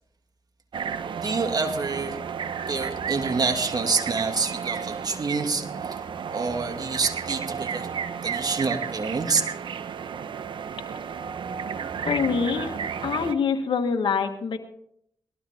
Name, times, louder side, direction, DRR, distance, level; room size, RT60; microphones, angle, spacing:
sound 1, 0.7-13.3, right 7 dB, 75° right, 0.9 m, -33 dB
voice 1, 1.2-2.2 2.7-6.0 6.3-7.9 8.2-9.4, right 4 dB, 50° right, 5 dB, 2.2 m, -27 dB
voice 2, 12.0-14.6, left 6 dB, 75° left, 4 dB, 1.5 m, -25 dB
19.0 x 13.0 x 3.6 m, 0.71 s
cardioid pair, 55°, 8 cm